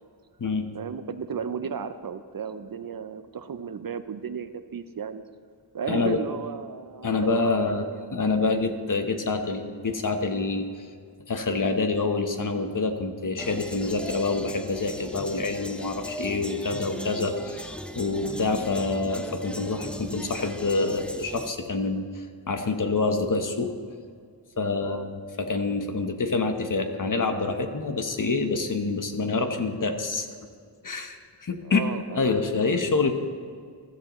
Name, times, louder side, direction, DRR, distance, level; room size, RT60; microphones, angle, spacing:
voice 1, 0.7-5.2 5.7-8.6 18.6-18.7 24.8-25.1 31.6-32.3, right 7 dB, 50° right, 11 dB, 0.5 m, -35 dB
voice 2, 5.9-6.2 7.0-10.7 11.3-23.7 24.6-25.1 25.4-30.3 30.8-31.8 32.1-33.1, left 3 dB, 45° left, 6 dB, 1.0 m, -27 dB
sound 1, 13.4-21.5, equal, 5° left, 0.5 m, -38 dB
15.0 x 13.5 x 3.0 m, 2.1 s
wide cardioid pair, 125°, 45 cm